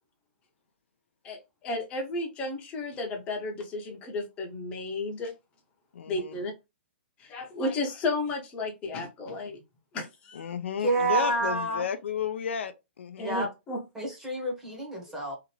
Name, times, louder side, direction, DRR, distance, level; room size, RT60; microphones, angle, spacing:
voice 1, 1.2-5.3 6.1-6.5 7.2-9.6 9.9-10.5 13.2-13.8, left 2 dB, 15° left, 0.7 m, -33 dB
voice 2, 5.9-6.3 10.3-13.3, left 7 dB, 80° left, 0.5 m, -33 dB
voice 3, 10.8-11.8 13.2-13.5 13.9-15.3, right 2 dB, 5° right, 0.9 m, -28 dB
2.8 x 2.4 x 3.1 m
hypercardioid pair, 170°, 6 cm